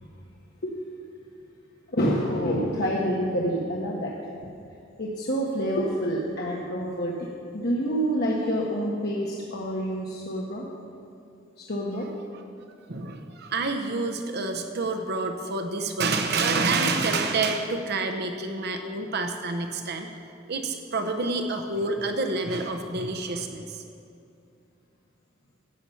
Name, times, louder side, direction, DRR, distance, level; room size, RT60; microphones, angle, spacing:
voice 1, 1.9-4.1 5.0-7.1 7.5-10.6 11.6-12.1, equal, 55° left, -3 dB, 1.3 m, -27 dB
voice 2, 12.9-20.1 20.5-23.8, right 3 dB, 55° right, 6 dB, 0.9 m, -28 dB
14.5 x 8.7 x 5.7 m, 2.5 s
head